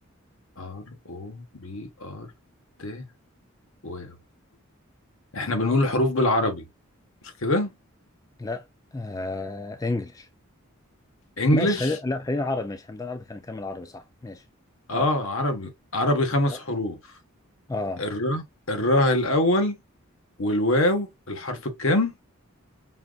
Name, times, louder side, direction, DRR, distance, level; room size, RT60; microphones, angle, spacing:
voice 1, 0.6-2.3 2.8-3.0 3.8-4.1 5.3-6.7 7.4-7.7 11.4-11.9 14.9-17.0 18.0-19.8 20.4-22.2, left 1 dB, 70° left, 1.2 m, -24 dB
voice 2, 8.9-10.3 11.5-14.4 14.9-15.1 16.5-16.6 17.7-18.0, left 2 dB, 15° left, 0.3 m, -30 dB
5.6 x 2.5 x 2.3 m
head